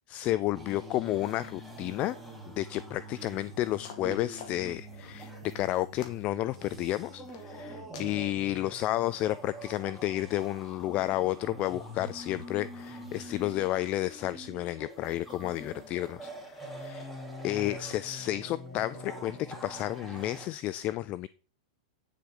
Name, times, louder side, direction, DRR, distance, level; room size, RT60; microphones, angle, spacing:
voice 1, 0.1-2.2 2.4-17.1 17.4-21.3, left 15 dB, 35° left, 0.3 m, -31 dB
sound 1, 0.5-20.5, right 1 dB, ahead, 2.7 m, -45 dB
sound 2, 3.3-3.4 3.8-4.8 5.2-5.5 6.0-6.3 6.6-7.0 7.3-7.6 7.9-8.2, left 7 dB, 60° left, 1.8 m, -47 dB
9.2 x 7.0 x 3.8 m
hypercardioid pair, 125°, 4 cm